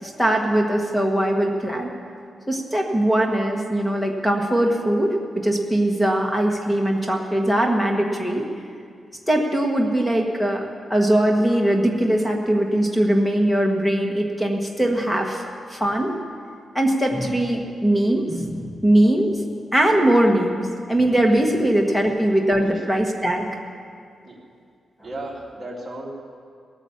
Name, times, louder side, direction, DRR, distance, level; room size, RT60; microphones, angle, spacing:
voice 1, 0.0-1.9 2.5-8.5 9.3-10.6 10.9-15.4 15.7-16.2 16.7-19.4 19.7-23.5, right 1 dB, 5° left, 2 dB, 1.5 m, -21 dB
voice 2, 22.2-22.8 24.2-24.4 25.0-26.1, right 1 dB, 20° right, -5 dB, 3.3 m, -36 dB
18.0 x 9.1 x 7.3 m, 2.2 s
wide cardioid pair, 140°, 0 cm